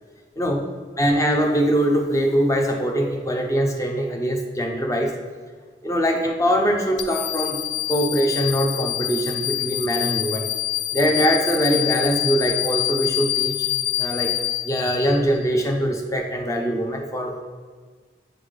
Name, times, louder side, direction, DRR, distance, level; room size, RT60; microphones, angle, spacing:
voice 1, 1.0-5.1 5.8-7.6 7.9-10.5 10.9-13.7 14.0-14.3 14.6-17.4, equal, 15° left, 2 dB, 0.5 m, -22 dB
sound 1, 7.0-15.5, left 15 dB, 70° left, 0.5 m, -26 dB
7.8 x 3.8 x 3.3 m, 1.5 s
head